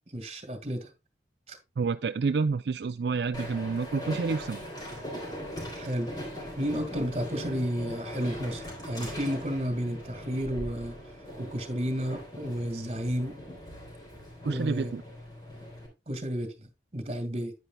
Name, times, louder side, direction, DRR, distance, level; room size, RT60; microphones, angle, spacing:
voice 1, 0.1-0.9 1.5-1.6 5.7-6.1 6.6-10.9 11.4-13.4 14.4-14.9 16.1-17.5, equal, 35° right, 1.9 m, -32 dB
voice 2, 1.8-4.6 14.4-15.0, right 4 dB, 65° right, 0.4 m, -29 dB
Train, 3.3-15.9, left 1 dB, 25° left, 3.5 m, -40 dB
9.9 x 9.4 x 2.3 m
head